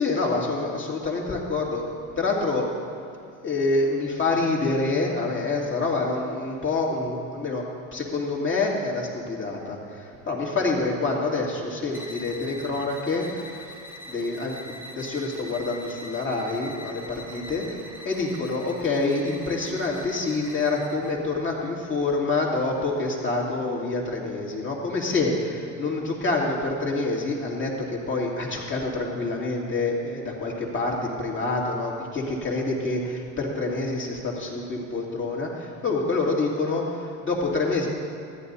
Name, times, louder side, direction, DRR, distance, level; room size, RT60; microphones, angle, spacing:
voice 1, 0.0-1.9 2.2-2.7 3.4-7.6 7.9-13.7 14.1-37.9, left 3 dB, 30° left, -2 dB, 2.7 m, -27 dB
sound 1, 11.9-21.2, equal, 5° right, 1.2 m, -43 dB
14.0 x 9.7 x 4.2 m, 2.5 s
hypercardioid pair, 75°, 39 cm